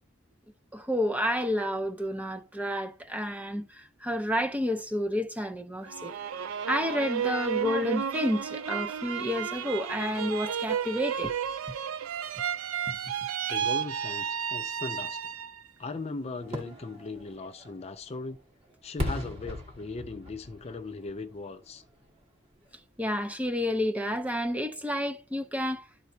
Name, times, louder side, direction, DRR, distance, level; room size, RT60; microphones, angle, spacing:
voice 1, 0.7-6.1 6.7-11.3 23.0-25.8, left 1 dB, 5° right, 0.7 m, -30 dB
sound 1, 5.9-15.7 16.1-16.8, right 8 dB, 85° right, 0.5 m, -32 dB
voice 2, 13.5-15.2 15.8-18.4 18.8-21.8, left 3 dB, 30° left, 0.4 m, -38 dB
Fireworks, 16.4-22.2 22.6-22.7, left 1 dB, 30° right, 1.5 m, -38 dB
13.0 x 4.5 x 2.7 m
head